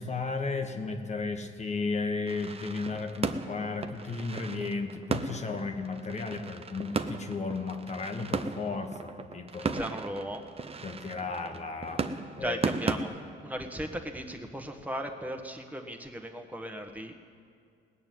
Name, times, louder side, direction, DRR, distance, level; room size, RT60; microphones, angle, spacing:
voice 1, 0.0-9.7 10.8-12.0 12.4-12.6, left 4 dB, 35° left, 5 dB, 1.4 m, -34 dB
sound 1, 2.3-12.9, right 4 dB, 30° right, 0.8 m, -36 dB
voice 2, 9.6-10.5 12.3-13.1 13.4-17.1, equal, 10° right, 4 dB, 1.5 m, -37 dB
18.5 x 6.8 x 9.4 m, 2.3 s
cardioid pair, 90°, 20 cm